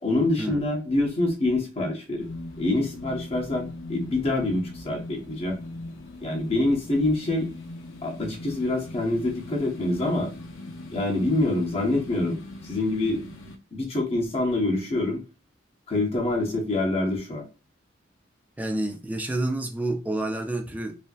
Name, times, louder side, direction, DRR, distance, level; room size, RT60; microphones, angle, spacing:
voice 1, 0.0-2.3 2.6-5.6 6.2-7.5 8.0-10.3 10.9-12.4 12.6-13.2 13.7-15.2 15.9-17.4, left 2 dB, 30° left, 0.8 m, -26 dB
sound 1, 2.2-13.6, left 2 dB, 85° left, 0.6 m, -40 dB
voice 2, 18.6-21.0, right 1 dB, 10° right, 0.4 m, -29 dB
3.2 x 2.6 x 2.3 m
head